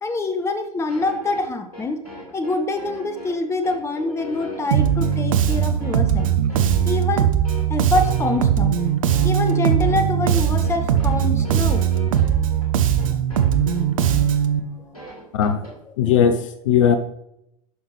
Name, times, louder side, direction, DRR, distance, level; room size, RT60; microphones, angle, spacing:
voice 1, 0.0-2.0 2.3-6.3 6.8-7.3 7.7-8.7 9.2-11.8 15.6-16.2, left 2 dB, 15° left, 8 dB, 0.9 m, -25 dB
sound 1, 0.9-15.7, left 1 dB, 80° left, 2.8 m, -39 dB
Bass guitar, 4.7-14.6, right 9 dB, 60° right, 0.7 m, -20 dB
voice 2, 16.0-17.0, left 8 dB, 55° left, 10 dB, 0.6 m, -18 dB
11.5 x 5.6 x 3.0 m, 0.78 s
figure-of-eight pair, 85°, 19 cm